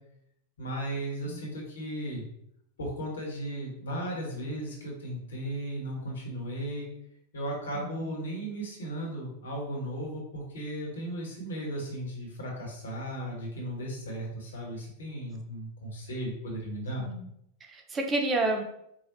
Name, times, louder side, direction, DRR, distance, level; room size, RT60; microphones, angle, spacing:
voice 1, 0.6-2.2 2.8-6.9 7.3-17.1, right 1 dB, 70° left, -2 dB, 1.3 m, -36 dB
voice 2, 7.7-8.1 17.0-17.3 17.6-18.6, right 2 dB, 20° right, 3 dB, 0.6 m, -30 dB
4.9 x 2.4 x 2.9 m, 0.74 s
figure-of-eight pair, 90°, 0 cm